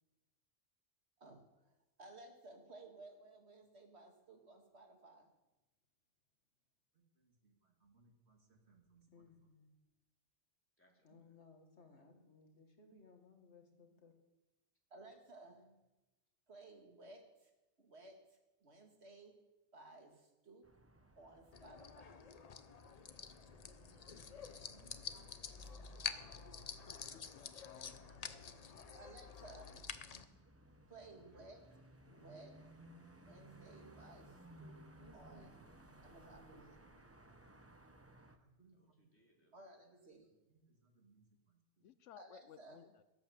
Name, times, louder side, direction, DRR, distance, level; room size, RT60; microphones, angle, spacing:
voice 1, 1.2-5.3 6.9-9.3 11.9-12.3 12.9-13.0 13.4-13.6 14.9-15.8 16.5-17.5 17.8-19.3 19.7-20.7 21.2-22.3 23.8-26.2 28.9-29.9 30.9-31.6 32.1-32.6 33.2-34.8 35.1-35.6 36.0-36.8 38.4-38.8 39.5-41.9 42.2-42.8, right 2 dB, 60° right, 3 dB, 2.2 m, -59 dB
voice 2, 9.1-9.7 11.0-14.1 30.1-30.3 35.0-35.5, left 3 dB, 65° left, 4 dB, 2.1 m, -63 dB
voice 3, 10.8-11.4 26.3-27.2 27.6-29.0 29.5-29.6 31.3-31.5 38.7-40.3, equal, 10° left, -1 dB, 3.1 m, -72 dB
sound 1, 20.6-38.4, right 1 dB, 15° right, 0.9 m, -62 dB
sound 2, 21.5-30.2, left 6 dB, 40° left, 0.6 m, -48 dB
voice 4, 26.9-28.8 41.8-43.0, left 10 dB, 85° left, 14 dB, 1.0 m, -60 dB
17.0 x 8.7 x 7.0 m, 1.0 s
omnidirectional pair, 1.2 m